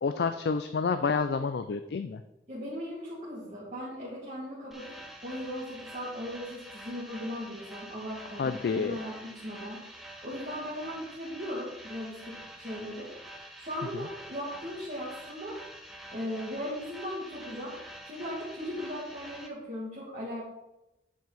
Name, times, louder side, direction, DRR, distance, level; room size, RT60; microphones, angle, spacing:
voice 1, 0.0-2.2 8.4-9.0, left 5 dB, 60° left, 10 dB, 0.3 m, -29 dB
voice 2, 2.5-13.2 13.6-15.6 16.1-17.7 18.0-20.4, equal, 40° right, -7 dB, 2.1 m, -38 dB
sound 1, 4.7-19.5, right 1 dB, ahead, 0.8 m, -47 dB
10.5 x 4.6 x 4.1 m, 0.93 s
head